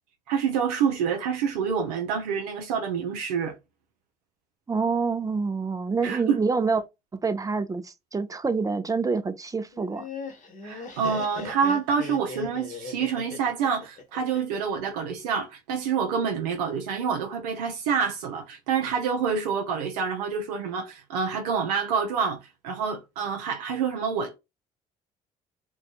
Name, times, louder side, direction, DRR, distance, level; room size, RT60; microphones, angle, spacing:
voice 1, 0.3-3.6 6.0-6.4 10.6-22.4 22.6-24.4, right 6 dB, 85° right, 0.5 m, -27 dB
voice 2, 4.7-6.8 7.1-10.1, right 4 dB, 15° right, 0.5 m, -27 dB
Laughter, 9.7-14.8, left 4 dB, 40° left, 0.9 m, -39 dB
2.6 x 2.2 x 2.3 m
hypercardioid pair, 50°, 20 cm